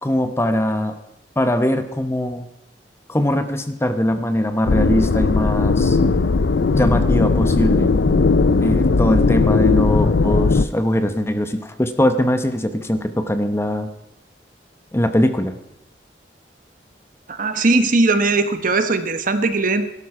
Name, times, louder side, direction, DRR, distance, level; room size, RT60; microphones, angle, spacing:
voice 1, 0.0-1.0 1.4-2.5 3.1-6.0 6.7-7.9 8.6-13.9 14.9-15.5, left 1 dB, 15° left, 9 dB, 0.9 m, -21 dB
sound 1, 4.7-10.6, left 3 dB, 70° left, 0.5 m, -17 dB
voice 2, 17.3-19.9, right 3 dB, 50° right, 9 dB, 1.0 m, -19 dB
16.5 x 12.5 x 4.8 m, 0.86 s
head